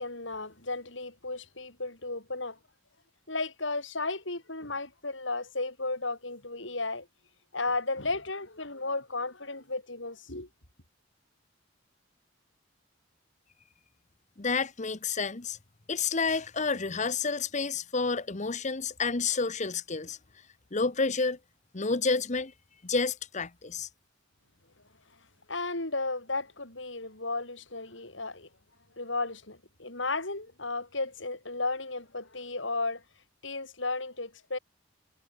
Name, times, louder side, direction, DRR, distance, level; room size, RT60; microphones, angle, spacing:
voice 1, 0.0-2.6 3.3-7.1 7.5-10.5 25.5-28.5 29.0-33.0 33.4-34.6, left 3 dB, 70° left, 7.1 m, -34 dB
voice 2, 14.4-15.6 15.9-20.2 20.7-21.4 21.7-22.5 22.8-23.9, left 4 dB, 40° left, 1.1 m, -29 dB
head